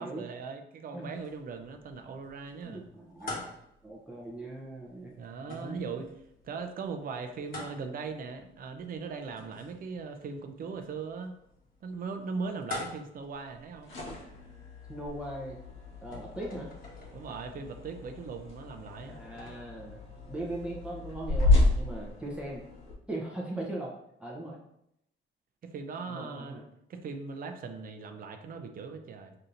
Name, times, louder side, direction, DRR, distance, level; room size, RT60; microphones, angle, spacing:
voice 1, 0.0-2.8 5.2-6.1 6.4-11.4 11.8-13.9 17.1-19.2 25.6-26.6 26.9-29.4, right 5 dB, 45° right, 6 dB, 0.5 m, -39 dB
sound 1, 1.1-19.5, left 2 dB, 45° left, 1.2 m, -48 dB
voice 2, 2.6-3.6 3.8-5.2 5.5-6.0 14.9-15.6 16.0-16.7 19.0-20.0 20.3-22.6 23.1-23.9 24.2-24.6 26.1-26.6, right 1 dB, 5° right, -3 dB, 0.7 m, -39 dB
sound 2, 13.6-22.9, left 2 dB, 85° left, 1.4 m, -31 dB
5.4 x 2.7 x 2.6 m, 0.77 s
cardioid pair, 90°, 20 cm